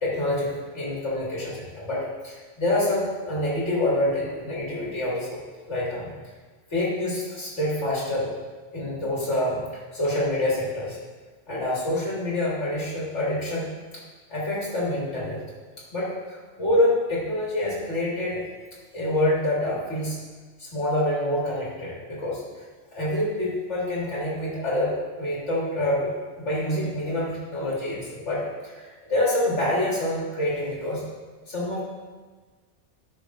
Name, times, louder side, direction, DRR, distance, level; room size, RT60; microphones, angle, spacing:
voice 1, 0.0-5.4 5.7-6.1 6.7-8.3 8.7-9.6 9.9-11.0 11.5-13.7 14.3-15.4 15.9-18.4 18.9-20.2 20.6-22.4 22.9-26.1 26.4-31.0 31.5-31.8, left 1 dB, 75° left, -6 dB, 2.3 m, -26 dB
10.5 x 5.1 x 2.5 m, 1.4 s
omnidirectional pair, 1.2 m